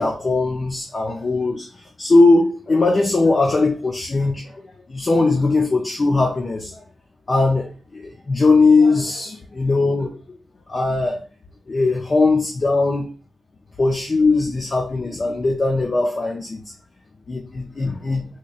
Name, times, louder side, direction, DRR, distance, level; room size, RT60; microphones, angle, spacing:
voice 1, 0.0-1.7 2.0-6.8 7.3-10.4 10.7-11.2 11.7-13.1 13.8-16.6 17.3-18.3, left 3 dB, 40° left, 0.6 m, -19 dB
4.0 x 3.0 x 2.4 m
cardioid pair, 90°, 0 cm